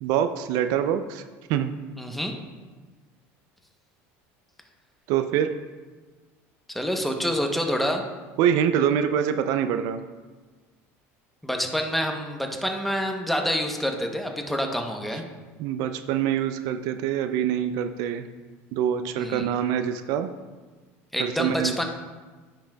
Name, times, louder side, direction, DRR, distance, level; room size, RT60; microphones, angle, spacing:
voice 1, 0.0-1.2 1.5-1.7 5.1-5.6 8.4-10.0 15.6-18.3 18.7-20.3 21.2-21.8, right 9 dB, 65° right, 9 dB, 0.4 m, -25 dB
voice 2, 2.0-2.3 6.7-8.0 11.4-15.2 19.2-19.5 21.1-21.8, equal, ahead, 3 dB, 0.8 m, -27 dB
9.7 x 5.9 x 2.2 m, 1.3 s
supercardioid pair, 105°, 7 cm